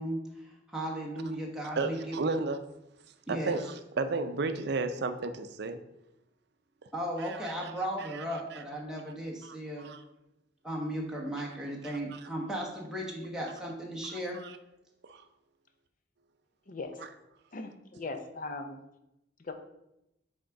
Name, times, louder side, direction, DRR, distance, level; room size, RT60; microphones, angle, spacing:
voice 1, 0.0-2.4 3.3-3.6 6.9-9.9 10.6-14.4, right 1 dB, 5° right, 1.1 m, -36 dB
voice 2, 1.8-2.6 3.3-5.8 7.2-7.5 8.1-8.2 8.5-8.6 9.4-10.0 12.1-12.2 14.4-14.5 15.1-15.2, right 3 dB, 60° right, 0.5 m, -33 dB
voice 3, 16.7-17.0 17.5-18.8 19.4-19.5, left 3 dB, 45° left, 0.7 m, -39 dB
6.4 x 3.6 x 4.6 m
head